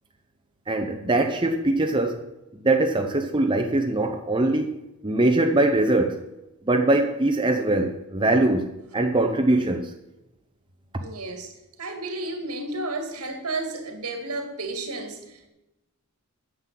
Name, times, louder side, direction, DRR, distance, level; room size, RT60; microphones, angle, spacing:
voice 1, 0.7-2.3 2.5-6.2 6.6-9.9, right 2 dB, 20° right, 0.8 m, -22 dB
voice 2, 11.0-11.5 11.8-15.5, right 2 dB, 85° right, 2.3 m, -32 dB
9.7 x 7.5 x 7.6 m
head